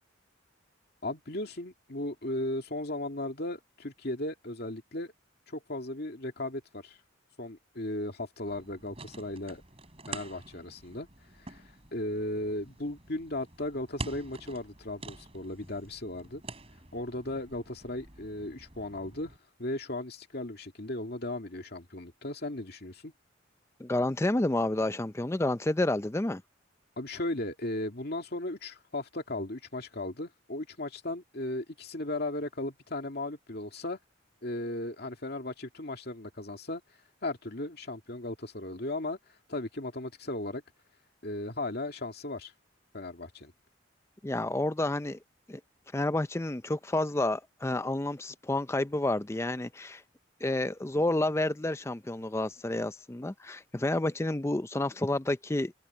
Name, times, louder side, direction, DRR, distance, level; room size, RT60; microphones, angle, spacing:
voice 1, 1.0-5.1 5.5-7.0 7.4-9.6 10.1-11.1 11.4-11.6 11.9-16.4 16.9-23.1 27.0-34.0 34.4-36.8 37.2-39.2 39.5-40.6 41.2-42.5 42.9-43.5, left 1 dB, 50° left, 2.3 m, -36 dB
sound 1, 8.5-19.4, right 3 dB, 30° right, 5.3 m, -47 dB
voice 2, 23.8-26.4 44.2-45.2 45.5-45.6 45.9-50.0 50.4-55.7, left 1 dB, 15° left, 0.4 m, -30 dB
open air
head